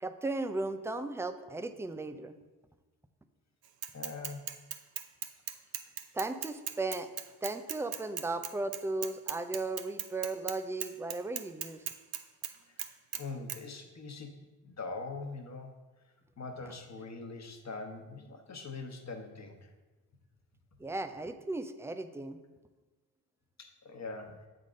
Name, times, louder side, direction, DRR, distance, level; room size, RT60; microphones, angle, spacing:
voice 1, 0.0-2.3 6.1-7.1 7.4-11.9 20.8-22.4, right 2 dB, 5° right, 10 dB, 0.3 m, -36 dB
Bicycle / Mechanisms, 3.8-10.6 10.8-12.5 12.8-13.2 13.5-13.6, right 9 dB, 50° right, 0.6 m, -38 dB
voice 2, 3.9-4.4 12.7-12.8 13.2-14.4 14.6-15.7 16.4-19.7 23.6-24.5, left 3 dB, 35° left, 3 dB, 1.1 m, -42 dB
7.3 x 3.9 x 5.1 m, 1.2 s
supercardioid pair, 60°, 49 cm